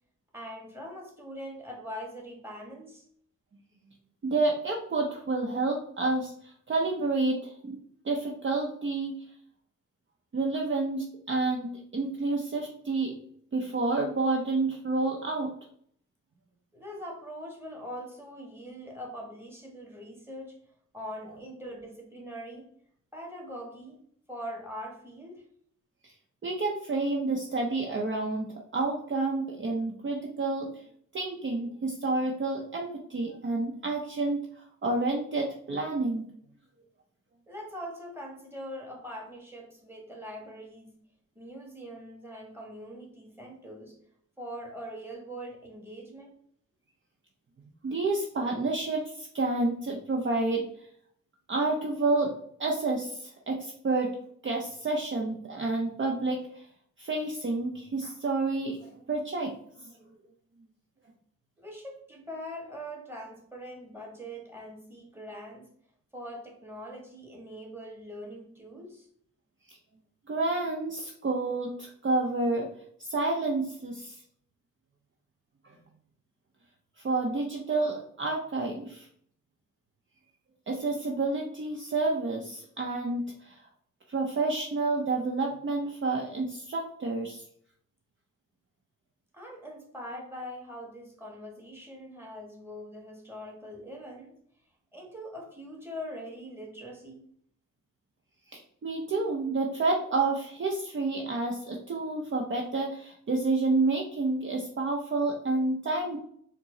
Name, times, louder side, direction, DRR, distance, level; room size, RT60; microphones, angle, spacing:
voice 1, 0.3-3.0 16.7-20.5 20.9-22.7 23.1-24.0 24.3-25.4 37.5-40.9 41.3-44.0 44.4-46.3 61.6-65.7 66.1-69.1 89.3-94.4 94.9-97.2, equal, 5° right, 0 dB, 1.5 m, -42 dB
voice 2, 4.2-7.8 8.0-9.1 10.3-13.1 13.5-15.5 26.0-26.1 26.4-30.8 31.1-36.2 47.8-50.9 51.5-52.3 52.6-54.1 54.4-56.7 57.0-59.5 69.7-69.8 70.3-72.7 73.0-74.2 75.6-75.7 77.0-79.1 80.7-83.7 84.1-87.4 98.5-106.2, right 3 dB, 40° right, 0 dB, 0.7 m, -29 dB
4.4 x 2.0 x 3.8 m, 0.64 s
cardioid pair, 60°, 32 cm